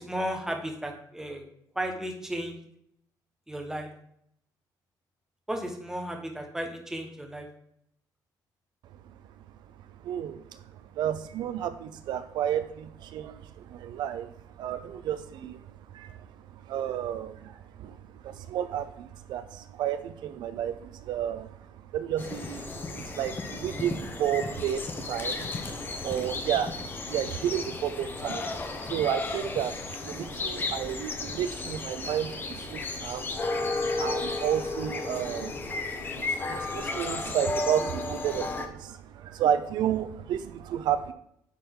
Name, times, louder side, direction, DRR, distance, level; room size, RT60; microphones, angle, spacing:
voice 1, 0.0-1.4 1.7-2.5 3.5-3.9 5.5-7.5, right 1 dB, 5° right, 2 dB, 1.3 m, -34 dB
voice 2, 10.0-10.6 11.0-14.3 14.6-15.6 15.9-16.1 16.7-18.0 18.2-21.5 21.9-26.8 27.1-28.4 28.8-35.5 35.8-41.1, right 10 dB, 75° right, 11 dB, 0.5 m, -32 dB
sound 1, 22.2-38.7, left 3 dB, 30° left, 0.9 m, -34 dB
10.0 x 4.2 x 3.8 m, 0.71 s
cardioid pair, 135°, 8 cm